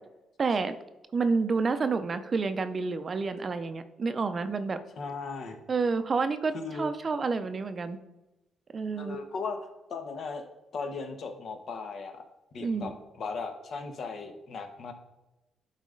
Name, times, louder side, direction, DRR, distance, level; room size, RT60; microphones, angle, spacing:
voice 1, 0.4-0.7 1.1-4.8 5.7-8.0 8.7-9.2 12.6-12.9, right 4 dB, 40° right, 10 dB, 0.6 m, -29 dB
voice 2, 5.0-5.6 6.5-6.9 9.0-9.6 9.9-10.5 10.7-12.2 12.5-12.9 13.2-14.9, left 4 dB, 60° left, 6 dB, 1.1 m, -37 dB
11.5 x 4.1 x 3.8 m, 0.98 s
cardioid pair, 90°, 0 cm